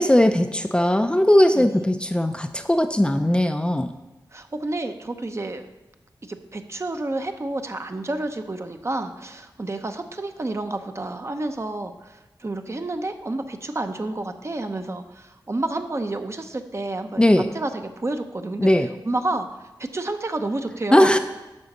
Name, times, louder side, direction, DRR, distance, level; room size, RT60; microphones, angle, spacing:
voice 1, 0.0-3.9 17.2-17.5 18.6-18.9 20.9-21.2, left 1 dB, 10° left, 7 dB, 0.5 m, -18 dB
voice 2, 4.3-5.7 6.2-17.2 17.5-19.5 19.8-21.1, right 2 dB, 35° right, 7 dB, 0.8 m, -30 dB
10.5 x 4.0 x 6.6 m, 1.0 s
wide cardioid pair, 80°, 8 cm